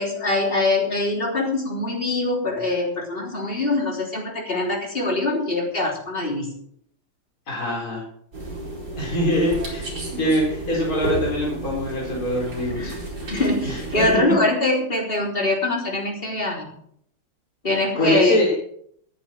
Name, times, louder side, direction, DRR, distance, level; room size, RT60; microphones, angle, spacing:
voice 1, 0.0-6.6 12.7-13.0 13.3-16.7 17.6-18.4, left 2 dB, 25° left, 0 dB, 3.7 m, -23 dB
voice 2, 7.5-8.0 9.0-9.9 10.2-12.9 13.6-13.8 14.1-14.4 18.0-18.5, equal, 40° left, -3 dB, 5.0 m, -23 dB
sound 1, 8.3-14.2, right 1 dB, 50° right, 5.1 m, -32 dB
19.5 x 10.5 x 4.5 m, 0.67 s
omnidirectional pair, 2.3 m